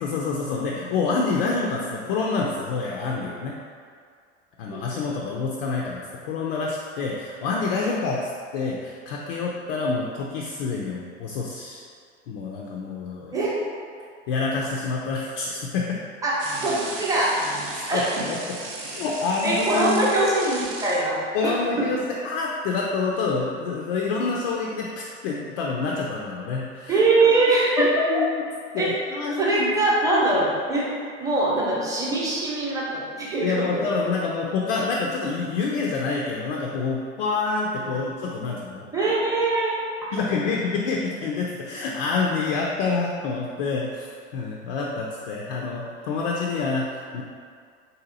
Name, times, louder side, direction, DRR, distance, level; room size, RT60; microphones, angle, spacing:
voice 1, 0.0-3.5 4.6-11.9 12.3-13.3 14.3-16.1 17.9-20.1 21.3-27.0 27.8-28.4 28.7-29.7 33.4-39.1 40.1-47.2, left 4 dB, 50° left, -2 dB, 0.4 m, -27 dB
voice 2, 4.7-5.0 13.3-13.5 16.2-17.3 17.9-18.1 19.4-21.2 21.4-21.6 26.9-28.0 28.8-28.9 29.4-30.9 31.2-33.9 37.8-38.0 38.9-39.8, right 2 dB, 10° right, -6 dB, 0.8 m, -22 dB
sound 1, 16.4-21.0, right 3 dB, 50° right, 0.7 m, -35 dB
3.7 x 2.7 x 2.6 m, 2.1 s
figure-of-eight pair, 75°, 36 cm